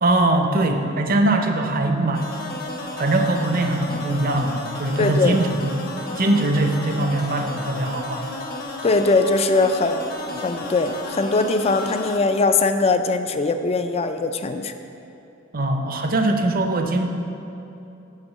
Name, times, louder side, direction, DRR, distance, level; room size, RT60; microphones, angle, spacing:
voice 1, 0.0-2.4 3.0-5.9 6.2-8.3 15.5-17.1, right 2 dB, 45° right, 5 dB, 0.7 m, -21 dB
sound 1, 2.1-12.2, left 2 dB, 45° left, 1.0 m, -33 dB
voice 2, 5.0-5.4 8.8-14.7, left 3 dB, 30° left, 8 dB, 0.4 m, -21 dB
6.4 x 6.2 x 7.3 m, 2.8 s
head